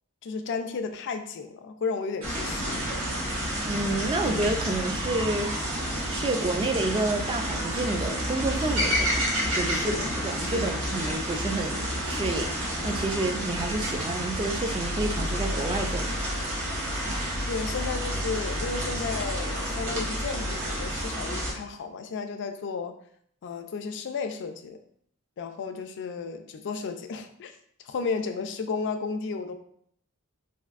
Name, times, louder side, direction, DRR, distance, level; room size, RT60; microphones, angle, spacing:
voice 1, 0.2-2.9 9.7-10.1 10.4-10.7 17.5-23.0 23.4-24.8 25.4-27.5 27.8-29.5, left 5 dB, 55° left, 7 dB, 0.4 m, -33 dB
sound 1, 2.2-21.5, equal, 70° right, 1.1 m, -30 dB
voice 2, 3.6-5.6 6.1-16.2, right 2 dB, 20° right, 5 dB, 0.3 m, -29 dB
4.1 x 2.6 x 2.4 m, 0.67 s
head